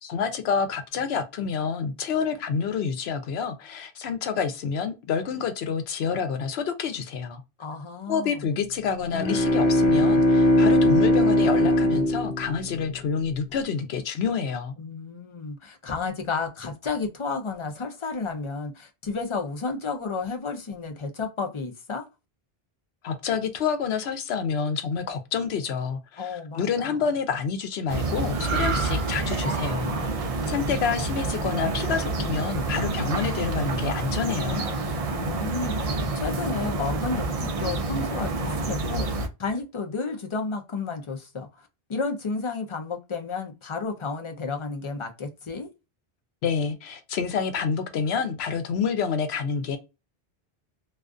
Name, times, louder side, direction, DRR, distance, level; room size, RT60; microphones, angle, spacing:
voice 1, 0.0-7.4 8.1-14.7 23.0-29.9 30.5-34.7 46.4-49.8, left 6 dB, 90° left, 0.9 m, -28 dB
voice 2, 7.6-8.4 14.8-22.1 26.2-26.9 35.1-45.7, left 4 dB, 40° left, 0.5 m, -32 dB
sound 1, 9.0-13.1, left 1 dB, 60° left, 0.9 m, -20 dB
sound 2, 27.9-39.3, right 3 dB, 50° right, 0.4 m, -28 dB
sound 3, 28.3-31.8 32.2-32.5, right 6 dB, 75° right, 0.8 m, -34 dB
2.4 x 2.3 x 2.4 m
omnidirectional pair, 1.0 m